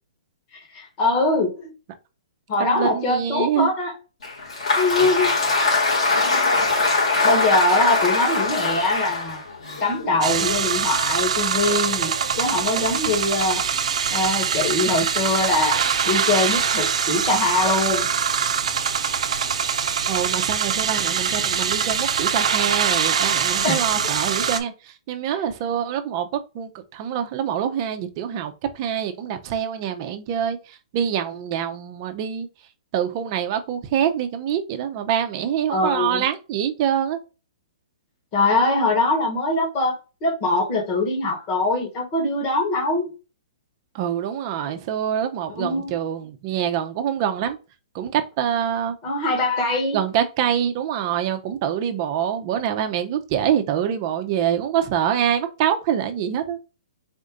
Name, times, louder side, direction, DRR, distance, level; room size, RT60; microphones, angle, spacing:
voice 1, 0.5-1.7 2.5-3.9 4.8-5.4 7.2-9.4 9.8-13.6 14.1-18.1 23.6-23.8 25.3-25.4 35.7-36.3 38.3-43.1 45.6-45.9 49.0-50.0, left 2 dB, 35° left, 1.7 m, -23 dB
voice 2, 2.6-3.7 20.1-32.5 32.9-37.2 43.9-47.6 47.9-49.0 49.9-56.6, right 9 dB, 40° right, 0.8 m, -25 dB
Applause, 4.2-10.5, left 3 dB, 75° left, 2.4 m, -22 dB
sound 1, 10.2-24.6, right 7 dB, 75° right, 0.7 m, -23 dB
4.3 x 2.6 x 3.6 m
hypercardioid pair, 145°, 3 cm